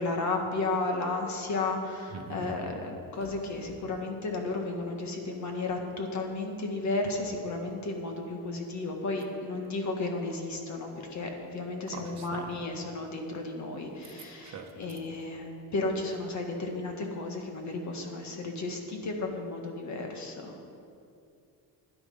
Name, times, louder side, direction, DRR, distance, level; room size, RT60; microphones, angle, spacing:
voice 1, 0.0-20.5, left 2 dB, 45° left, 3 dB, 1.7 m, -33 dB
voice 2, 2.1-2.6 11.9-12.5 14.4-14.7, right 5 dB, 40° right, 3 dB, 1.2 m, -41 dB
12.0 x 10.0 x 5.6 m, 2.6 s
cardioid pair, 140°, 40 cm